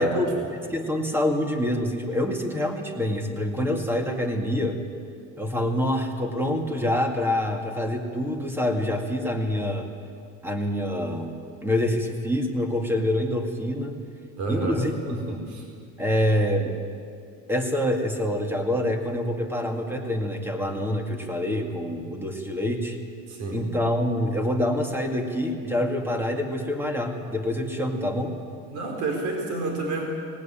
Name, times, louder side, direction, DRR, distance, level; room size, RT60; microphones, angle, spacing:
voice 1, 0.0-4.8 5.4-9.9 10.4-14.0 14.5-15.5 16.0-16.7 17.5-23.0 23.5-28.3, left 1 dB, 5° right, 3 dB, 2.2 m, -26 dB
voice 2, 14.4-15.6 23.3-23.6 28.7-30.0, right 2 dB, 65° right, 1 dB, 4.4 m, -29 dB
19.0 x 19.0 x 8.9 m, 2.3 s
cardioid pair, 145°, 32 cm